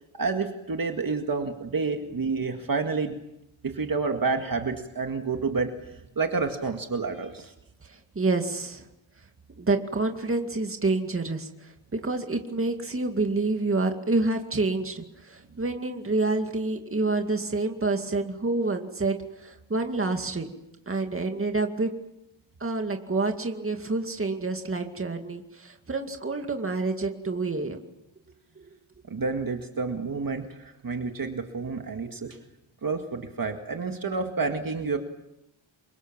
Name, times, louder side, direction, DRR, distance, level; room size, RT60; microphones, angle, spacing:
voice 1, 0.1-3.2 3.6-7.5 29.1-32.4 32.8-35.0, right 4 dB, 45° right, 4 dB, 2.0 m, -29 dB
voice 2, 7.8-8.9 9.6-20.5 20.9-21.9 22.6-27.8 28.6-28.7, right 3 dB, 25° right, 4 dB, 2.3 m, -28 dB
28.0 x 24.0 x 7.4 m, 0.89 s
wide cardioid pair, 180°, 48 cm